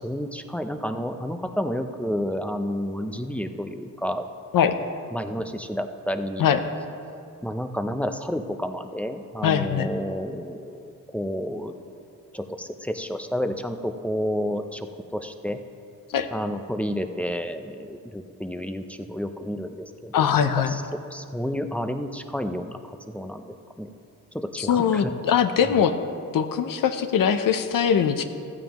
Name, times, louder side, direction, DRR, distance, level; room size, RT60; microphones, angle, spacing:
voice 1, 0.0-4.3 5.1-6.5 7.4-11.7 12.3-15.6 16.3-19.7 20.0-20.8 21.1-23.9 24.3-25.1, equal, 5° left, 7 dB, 0.4 m, -30 dB
voice 2, 9.4-9.9 16.1-16.3 20.1-20.7 24.6-25.9 26.3-28.2, left 8 dB, 85° left, 9 dB, 0.7 m, -21 dB
15.0 x 14.5 x 3.0 m, 2.5 s
wide cardioid pair, 160°, 33 cm